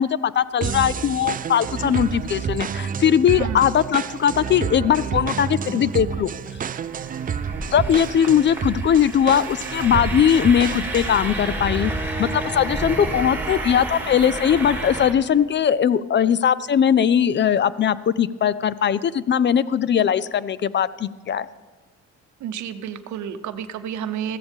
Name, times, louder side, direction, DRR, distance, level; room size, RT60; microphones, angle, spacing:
voice 1, 0.0-6.3 7.7-11.9 12.2-21.5, left 8 dB, 40° left, 18 dB, 0.4 m, -20 dB
sound 1, 0.6-11.2, right 7 dB, 30° right, 0.4 m, -29 dB
sound 2, 6.8-15.1, right 2 dB, 5° right, 2.5 m, -30 dB
voice 2, 22.4-24.4, right 9 dB, 75° right, 10 dB, 0.8 m, -30 dB
14.5 x 13.5 x 3.6 m, 1.3 s
cardioid pair, 95°, 29 cm